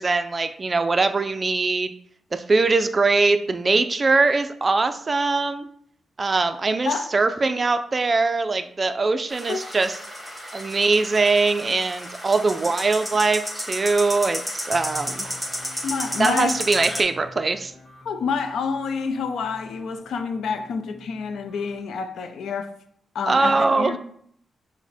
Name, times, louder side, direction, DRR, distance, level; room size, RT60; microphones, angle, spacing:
voice 1, 0.0-1.9 2.3-5.7 6.2-10.0 10.5-15.3 16.2-17.7 23.3-23.9, right 3 dB, 30° right, 0.3 m, -22 dB
sound 1, 9.3-17.0, equal, ahead, 1.1 m, -33 dB
sound 2, 14.7-21.8, left 2 dB, 15° left, 1.3 m, -47 dB
voice 2, 15.8-16.6 18.1-22.7 23.1-24.0, left 5 dB, 80° left, 0.5 m, -28 dB
5.9 x 2.1 x 4.2 m
wide cardioid pair, 150°, 0 cm